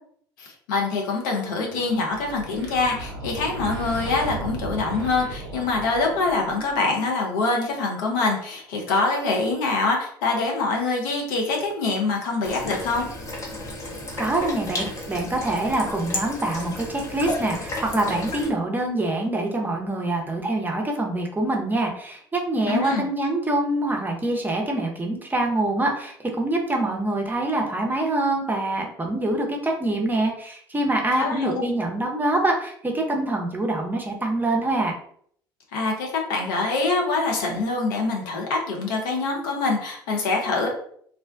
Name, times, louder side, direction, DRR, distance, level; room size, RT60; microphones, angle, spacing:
voice 1, 0.4-13.1 22.7-23.0 31.2-31.6 35.7-40.7, left 3 dB, 65° left, 0 dB, 0.6 m, -25 dB
sound 1, 1.5-6.9, right 1 dB, 75° right, 0.4 m, -36 dB
sound 2, 12.4-18.5, left 1 dB, 25° left, 0.7 m, -33 dB
voice 2, 14.2-35.0, right 2 dB, 15° right, 1 dB, 0.6 m, -25 dB
2.4 x 2.1 x 2.4 m, 0.62 s
figure-of-eight pair, 60°, 12 cm